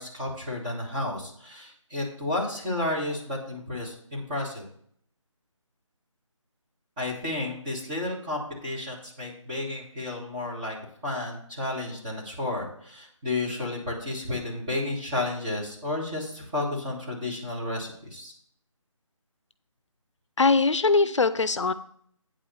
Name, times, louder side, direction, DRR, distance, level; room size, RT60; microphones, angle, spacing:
voice 1, 0.0-4.6 7.0-10.8 11.0-18.3, left 2 dB, 15° right, -6 dB, 2.0 m, -32 dB
voice 2, 20.4-21.7, left 4 dB, 60° left, 13 dB, 0.5 m, -21 dB
8.8 x 5.0 x 6.9 m, 0.63 s
figure-of-eight pair, 170°, 17 cm